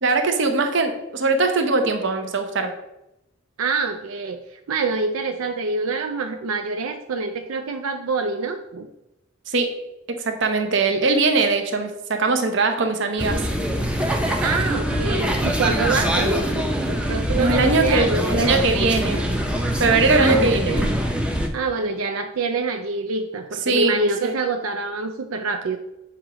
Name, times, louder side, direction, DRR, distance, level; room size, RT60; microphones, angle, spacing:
voice 1, 0.0-2.7 9.5-9.7 10.1-13.5 17.4-19.2 19.8-20.8 23.7-23.9 24.2-24.3, right 3 dB, 60° right, 5 dB, 0.7 m, -21 dB
voice 2, 3.6-8.9 14.4-18.4 20.1-21.0 21.5-25.8, right 3 dB, 85° right, 6 dB, 0.4 m, -26 dB
sound 1, 13.2-21.5, equal, 5° right, 0.5 m, -23 dB
7.1 x 3.0 x 4.8 m, 0.90 s
head